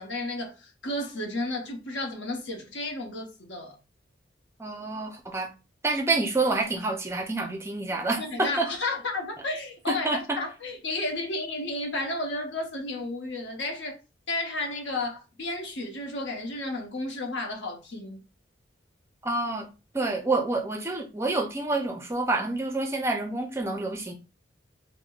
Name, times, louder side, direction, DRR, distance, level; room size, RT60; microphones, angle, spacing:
voice 1, 0.0-3.8 8.2-14.0 14.3-18.2, left 2 dB, 75° left, 0.9 m, -32 dB
voice 2, 4.6-5.5 5.8-8.7 9.9-10.4 19.2-19.7 19.9-24.1, right 2 dB, 15° right, 0.4 m, -28 dB
5.0 x 2.0 x 2.3 m
head